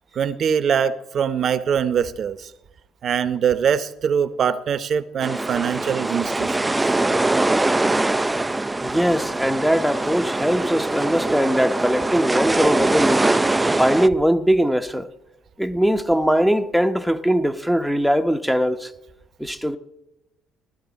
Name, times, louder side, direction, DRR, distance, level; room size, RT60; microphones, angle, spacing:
voice 1, 0.1-2.5 3.0-6.8, right 7 dB, 55° right, 0.8 m, -23 dB
sound 1, 5.2-14.1, right 2 dB, 15° right, 0.4 m, -22 dB
voice 2, 8.8-13.3 13.8-15.1 15.6-18.9 19.4-19.8, equal, ahead, 0.9 m, -20 dB
15.5 x 12.0 x 4.1 m
hypercardioid pair, 65°, 0 cm